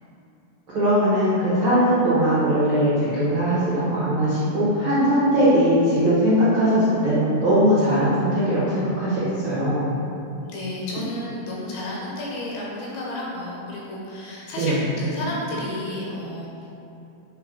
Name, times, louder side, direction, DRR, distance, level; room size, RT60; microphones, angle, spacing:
voice 1, 0.7-9.9 14.6-14.8, equal, 75° right, -11 dB, 1.1 m, -20 dB
voice 2, 10.5-16.7, left 1 dB, 80° left, -4 dB, 2.9 m, -32 dB
7.7 x 3.9 x 3.8 m, 2.8 s
omnidirectional pair, 4.4 m